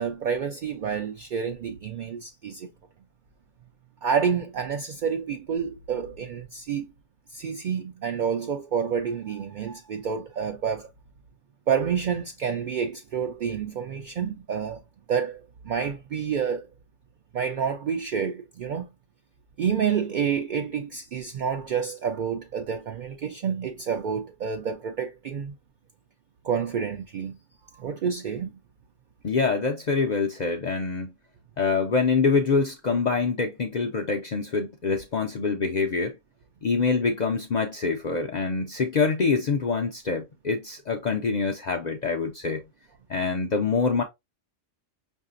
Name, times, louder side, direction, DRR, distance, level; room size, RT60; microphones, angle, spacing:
voice 1, 0.0-2.7 4.0-6.9 7.3-10.9 11.7-14.8 15.1-16.7 17.3-18.9 19.6-25.5 26.4-27.4 27.7-28.5, right 7 dB, 65° right, 0.5 m, -28 dB
voice 2, 29.2-31.1 31.6-36.2 36.6-42.6 43.1-44.0, left 4 dB, 60° left, 0.4 m, -25 dB
5.6 x 2.6 x 2.5 m
omnidirectional pair, 1.3 m